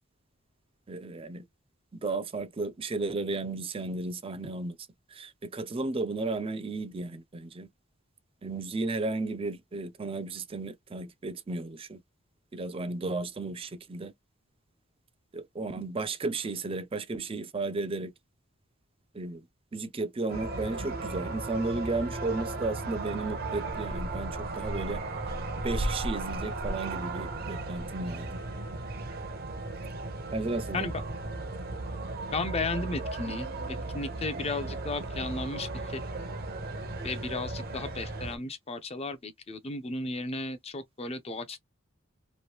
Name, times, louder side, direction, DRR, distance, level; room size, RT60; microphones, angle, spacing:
voice 1, 0.9-1.4 1.9-4.8 5.1-7.7 8.4-12.0 12.5-14.1 15.3-18.1 19.1-19.4 19.7-25.0 25.6-28.4 30.3-30.9, right 3 dB, 25° right, 0.4 m, -34 dB
sound 1, 20.3-38.4, right 2 dB, 50° right, 0.8 m, -35 dB
voice 2, 32.3-36.0 37.0-41.6, left 3 dB, 30° left, 0.6 m, -34 dB
3.1 x 2.6 x 2.9 m
head